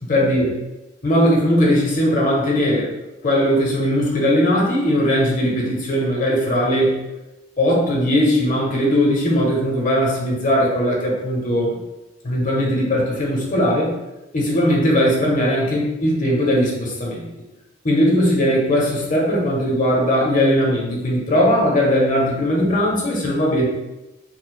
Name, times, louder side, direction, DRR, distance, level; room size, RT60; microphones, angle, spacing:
voice 1, 0.0-0.5 1.0-2.9 3.2-7.0 7.6-11.8 12.2-13.9 14.3-17.3 17.8-23.6, equal, 45° left, -2 dB, 0.9 m, -19 dB
4.4 x 2.3 x 2.3 m, 1.0 s
head